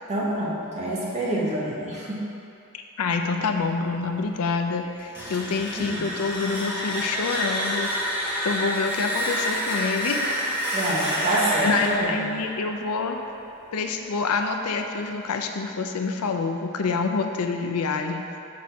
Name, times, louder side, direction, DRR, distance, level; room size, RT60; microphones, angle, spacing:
voice 1, 0.1-2.2 5.8-6.1 10.7-12.2, right 1 dB, 30° right, -7 dB, 1.3 m, -27 dB
voice 2, 3.0-7.9 8.4-10.2 11.6-13.2 13.7-18.3, left 4 dB, 90° left, 5 dB, 0.5 m, -27 dB
sound 1, 5.0-13.8, equal, 10° right, 1.4 m, -28 dB
6.2 x 4.3 x 4.7 m, 2.7 s
head